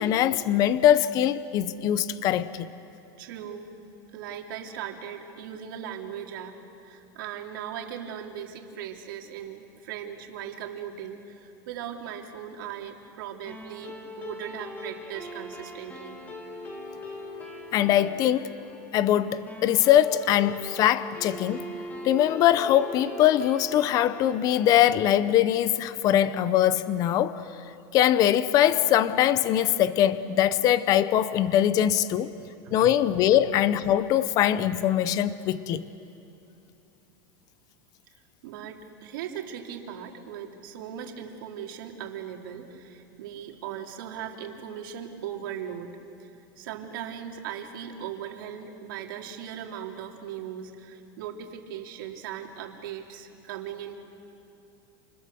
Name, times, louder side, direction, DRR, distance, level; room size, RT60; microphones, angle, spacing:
voice 1, 0.0-2.7 17.7-18.5 18.9-21.7 22.0-27.4 27.9-32.3 32.7-35.8, left 11 dB, 30° left, 0.7 m, -22 dB
voice 2, 3.2-3.7 4.1-16.2 32.6-32.9 38.4-46.3 46.6-54.0, right 9 dB, 75° right, 3.2 m, -38 dB
sound 1, 13.5-26.2, left 1 dB, 15° left, 2.6 m, -41 dB
29.0 x 29.0 x 6.9 m
supercardioid pair, 165°, 11 cm